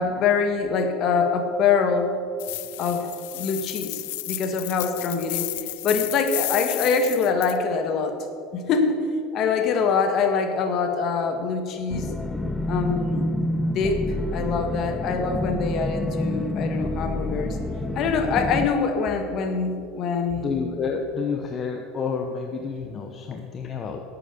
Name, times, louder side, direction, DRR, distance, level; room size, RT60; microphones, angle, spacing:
voice 1, 0.0-2.2 2.8-5.5 5.8-8.2 8.5-9.0 9.3-12.1 12.7-13.3 13.6-14.0 14.3-17.6 17.9-20.5, left 5 dB, 50° left, 6 dB, 1.6 m, -24 dB
sound 1, 2.4-7.6, left 19 dB, 80° left, 0.5 m, -32 dB
sound 2, 11.9-18.7, left 1 dB, 10° left, 0.6 m, -28 dB
voice 2, 20.3-24.0, left 5 dB, 35° left, 3 dB, 1.0 m, -29 dB
11.5 x 8.8 x 6.9 m, 2.5 s
supercardioid pair, 120°, 0 cm